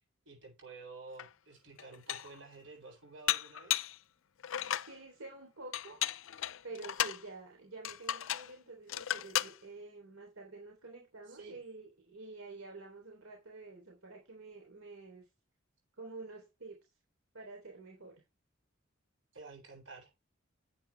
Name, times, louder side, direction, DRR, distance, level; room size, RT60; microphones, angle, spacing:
voice 1, 0.2-3.9 11.3-11.6 19.3-20.1, right 3 dB, 60° right, 7.7 m, -51 dB
Dishes pots and pans, 1.2-1.3 1.8-2.4 3.3-4.0 4.4-4.9 5.7-7.2 7.8-8.5 8.9-9.6, left 12 dB, 70° left, 0.5 m, -35 dB
voice 2, 4.8-6.0 6.6-15.2 16.0-16.8 17.3-18.2, right 3 dB, 90° right, 3.4 m, -49 dB
11.0 x 8.7 x 3.4 m
head